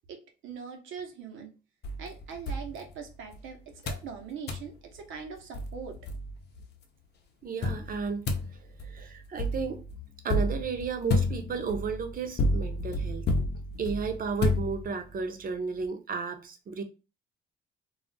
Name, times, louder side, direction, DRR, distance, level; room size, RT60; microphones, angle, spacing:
voice 1, 0.1-1.5 2.0-6.0, right 6 dB, 80° right, 0.8 m, -42 dB
sound 1, 1.8-3.4 3.9-4.1 4.5-4.7 5.2-5.3 5.5-6.6 7.6-15.2, left 2 dB, 55° left, 0.6 m, -31 dB
voice 2, 7.4-8.3 8.6-9.8 10.2-13.3 13.8-16.8, right 5 dB, 45° right, 0.6 m, -33 dB
2.4 x 2.0 x 3.9 m
cardioid pair, 90°, 20 cm